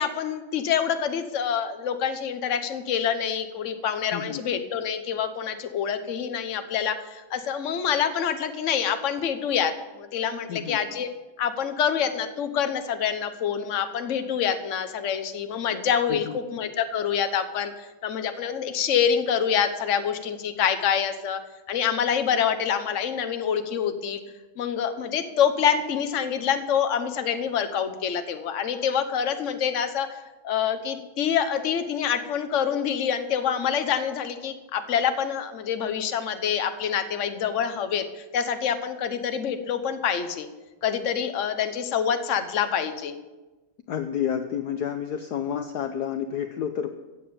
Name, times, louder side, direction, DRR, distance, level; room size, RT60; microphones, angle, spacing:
voice 1, 0.0-11.1 11.4-21.4 21.7-24.2 24.6-30.1 30.4-40.5 40.8-43.1, left 8 dB, 45° left, 9 dB, 1.2 m, -26 dB
voice 2, 4.1-4.5 10.5-10.8 16.1-16.4 43.9-46.9, left 8 dB, 65° left, 7 dB, 1.2 m, -30 dB
15.5 x 8.7 x 7.1 m, 1.1 s
omnidirectional pair, 2.1 m